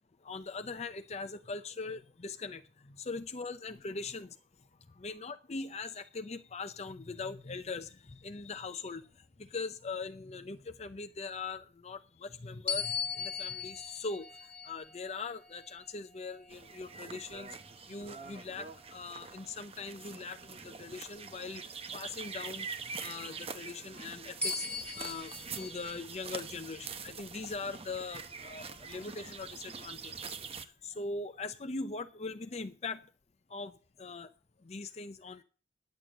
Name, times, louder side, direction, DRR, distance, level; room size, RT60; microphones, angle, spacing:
voice 1, 0.2-4.4 4.9-17.6 17.9-22.7 23.0-24.7 24.9-33.0 33.5-34.3 34.6-35.4, left 4 dB, 35° left, 0.6 m, -41 dB
sound 1, 12.7-17.4 18.0-18.2 24.4-26.0, left 5 dB, 10° left, 1.6 m, -39 dB
sound 2, 16.5-30.6, right 5 dB, 35° right, 0.8 m, -45 dB
10.5 x 6.9 x 7.6 m
head